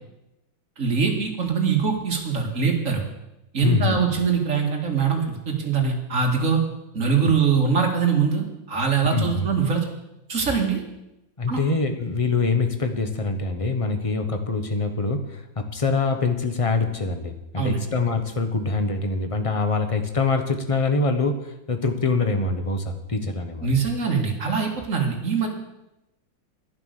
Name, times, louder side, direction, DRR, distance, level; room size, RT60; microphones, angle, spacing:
voice 1, 0.8-3.0 3.5-6.6 6.9-9.8 10.3-10.8 11.5-11.6 17.6-17.8 23.6-25.5, right 6 dB, 40° right, 2 dB, 2.1 m, -23 dB
voice 2, 3.6-4.0 9.1-9.5 11.4-23.8, left 3 dB, 25° left, 6 dB, 0.9 m, -24 dB
11.0 x 10.5 x 6.6 m, 0.92 s
omnidirectional pair, 2.2 m